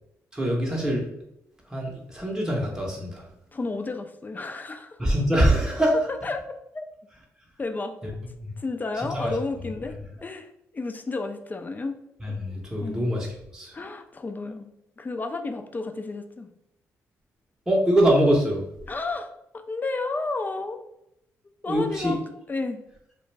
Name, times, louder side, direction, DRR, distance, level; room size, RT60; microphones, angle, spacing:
voice 1, 0.3-1.0 1.7-3.2 5.0-6.0 8.4-8.5 9.0-9.3 12.2-13.3 13.5-13.7 17.7-18.6 21.7-22.2, right 1 dB, 10° right, -2 dB, 0.7 m, -23 dB
voice 2, 3.5-5.0 6.1-6.8 7.6-8.0 8.6-9.9 10.2-12.0 12.8-13.1 13.7-14.7 15.0-16.5 18.9-20.8 21.6-22.2 22.5-22.8, left 3 dB, 25° left, 6 dB, 0.3 m, -32 dB
2.4 x 2.1 x 3.2 m, 0.81 s
supercardioid pair, 55°, 7 cm